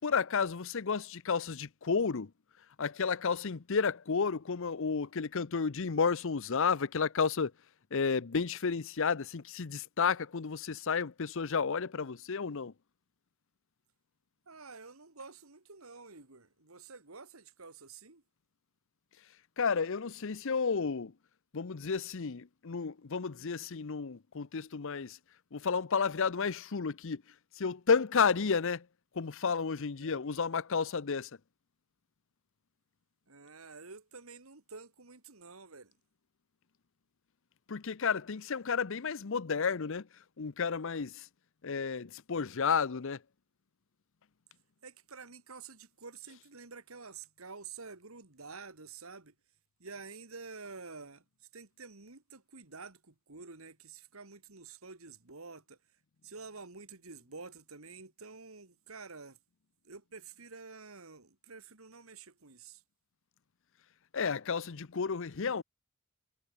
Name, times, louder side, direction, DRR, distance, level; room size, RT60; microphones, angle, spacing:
voice 1, 0.0-2.3 2.8-7.5 7.9-12.7 19.6-21.1 21.5-25.2 25.5-27.2 27.6-28.8 29.2-31.3 37.7-40.1 40.4-41.3 41.6-43.2 64.1-65.6, left 5 dB, 65° left, 0.7 m, -31 dB
voice 2, 14.5-18.2 30.0-30.4 33.3-35.9 44.8-49.3 49.8-51.2 51.5-55.8 56.2-59.4 59.8-62.8, right 4 dB, 75° right, 2.5 m, -49 dB
head